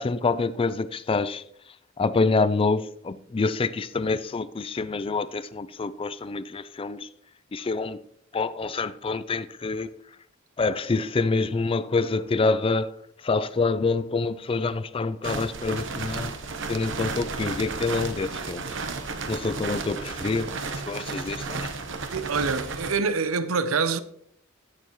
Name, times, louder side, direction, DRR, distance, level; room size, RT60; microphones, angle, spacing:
voice 1, 0.0-1.4 2.0-7.1 7.5-8.0 8.3-9.9 10.6-13.0 13.2-16.3 16.7-18.6 19.3-20.5 20.9-21.7, left 3 dB, 25° left, 0.4 m, -26 dB
sound 1, 15.2-22.9, right 4 dB, 65° right, 1.0 m, -33 dB
voice 2, 22.1-24.0, right 4 dB, 85° right, 0.7 m, -25 dB
15.5 x 6.7 x 3.1 m
head